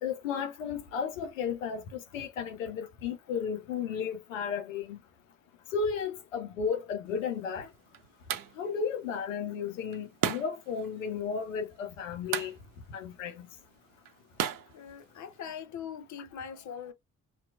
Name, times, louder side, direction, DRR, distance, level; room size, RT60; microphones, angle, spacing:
voice 1, 0.0-5.0 5.7-7.7 8.6-12.5 12.9-13.4, left 6 dB, 90° left, 0.5 m, -34 dB
Lightswitch On Off, 7.1-15.6, right 10 dB, 60° right, 0.7 m, -39 dB
voice 2, 14.7-16.9, left 7 dB, 50° left, 0.7 m, -41 dB
2.8 x 2.2 x 2.3 m
hypercardioid pair, 40°, 38 cm